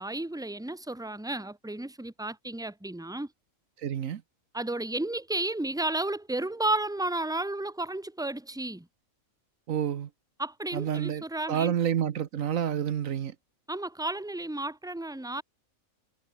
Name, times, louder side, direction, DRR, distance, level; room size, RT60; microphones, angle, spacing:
voice 1, 0.0-3.3 4.5-8.9 10.4-11.7 13.7-15.4, right 2 dB, 5° right, 1.6 m, -32 dB
voice 2, 3.8-4.2 9.7-10.1 10.7-13.3, right 9 dB, 75° right, 1.3 m, -29 dB
omnidirectional pair, 1.4 m